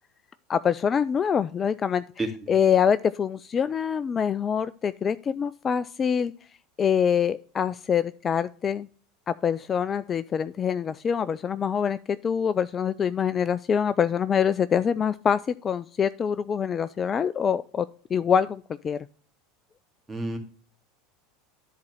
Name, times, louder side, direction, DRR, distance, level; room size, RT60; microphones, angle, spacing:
voice 1, 0.5-2.0 2.5-6.3 6.8-8.9 9.3-19.1, left 7 dB, 30° left, 14 dB, 0.3 m, -25 dB
voice 2, 2.2-2.5 20.1-20.4, right 2 dB, 15° right, 3 dB, 2.3 m, -30 dB
10.5 x 4.2 x 6.3 m, 0.44 s
hypercardioid pair, 80°, 0 cm